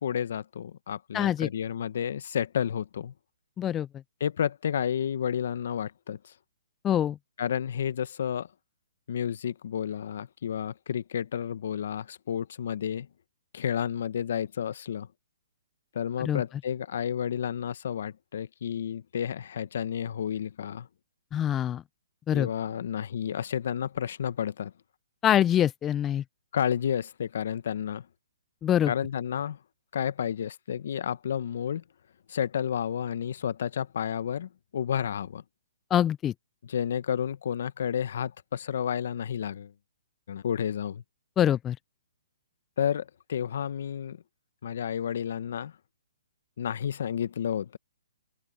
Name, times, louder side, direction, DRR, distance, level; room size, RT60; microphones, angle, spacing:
voice 1, 0.0-3.1 4.2-6.3 7.4-8.5 9.1-13.1 13.5-15.1 15.9-20.9 22.3-24.7 26.5-28.1 28.9-29.6 29.9-31.8 32.3-35.4 36.6-39.7 40.3-41.0 42.8-44.2 44.6-45.7 46.6-47.8, left 8 dB, 65° left, 1.2 m, -31 dB
voice 2, 1.1-1.5 3.6-3.9 6.8-7.2 16.2-16.4 21.3-21.8 22.3-22.5 25.2-26.2 28.6-28.9 35.9-36.3 41.4-41.8, left 10 dB, 15° left, 0.5 m, -24 dB
open air
hypercardioid pair, 145°, 0 cm